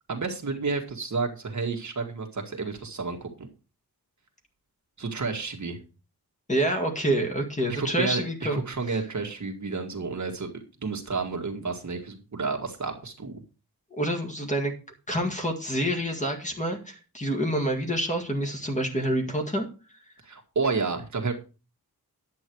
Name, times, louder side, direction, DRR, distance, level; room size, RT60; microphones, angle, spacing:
voice 1, 0.1-3.5 5.0-5.8 7.7-10.5 10.8-13.4 20.2-21.3, right 4 dB, 45° right, 3 dB, 1.9 m, -31 dB
voice 2, 6.5-8.6 8.9-9.0 13.9-14.7 15.1-19.7, right 1 dB, 20° left, 3 dB, 1.9 m, -27 dB
10.5 x 8.2 x 4.6 m, 0.32 s
wide cardioid pair, 175°, 38 cm